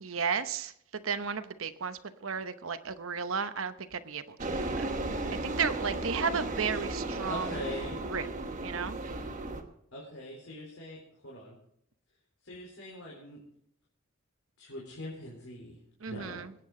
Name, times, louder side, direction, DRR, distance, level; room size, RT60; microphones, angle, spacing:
voice 1, 0.0-0.7 1.0-4.9 5.4-7.6 8.1-8.3 8.6-9.0 16.0-16.5, right 6 dB, 70° right, 10 dB, 0.8 m, -34 dB
sound 1, 4.4-9.6, right 2 dB, 35° right, 1.2 m, -35 dB
voice 2, 7.2-8.1 9.9-11.0 11.2-11.6 12.4-13.4 14.6-15.7 16.1-16.4, left 1 dB, 90° left, -3 dB, 3.7 m, -42 dB
22.0 x 9.2 x 3.8 m, 0.71 s
head